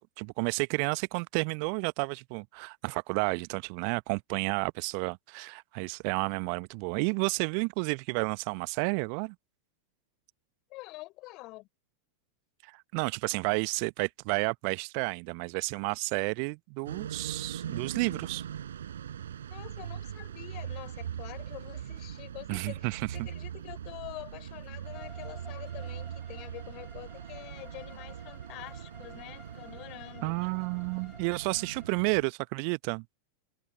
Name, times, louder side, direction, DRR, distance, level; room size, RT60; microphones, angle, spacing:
voice 1, 0.0-9.3 12.6-18.4 22.5-23.3 30.2-33.0, right 40 dB or more, 45° right, 1.0 m, -31 dB
voice 2, 10.7-11.7 19.5-30.4, left 21 dB, 40° left, 4.5 m, -46 dB
sound 1, 16.9-32.2, right 9 dB, 65° right, 4.8 m, -41 dB
Bowed string instrument, 24.8-32.0, left 3 dB, 10° left, 3.7 m, -54 dB
figure-of-eight pair, 90°, 0 cm